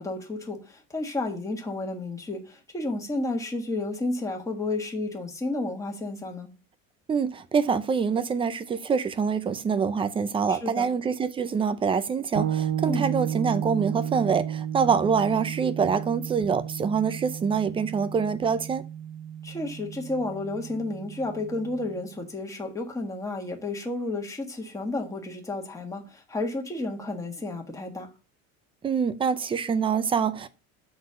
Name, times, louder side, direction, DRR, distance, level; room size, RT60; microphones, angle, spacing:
voice 1, 0.0-6.5 10.5-10.9 12.9-13.1 19.4-28.1, left 2 dB, 10° left, 1.4 m, -32 dB
voice 2, 7.1-18.8 28.8-30.5, right 6 dB, 15° right, 0.4 m, -25 dB
sound 1, 12.4-22.0, right 9 dB, 50° right, 1.1 m, -33 dB
7.4 x 4.0 x 6.8 m
cardioid pair, 145°, 36 cm